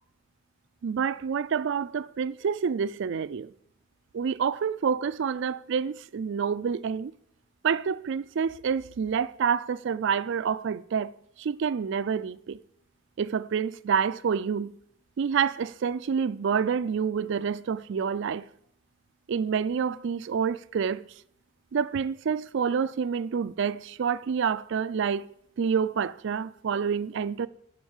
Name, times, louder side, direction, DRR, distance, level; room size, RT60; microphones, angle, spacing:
voice 1, 0.8-3.5 4.1-7.1 7.6-11.1 11.4-12.6 13.2-14.7 15.2-18.5 19.3-21.0 21.7-25.3 25.6-27.5, right 6 dB, 60° right, 0.4 m, -28 dB
8.1 x 5.1 x 7.2 m
head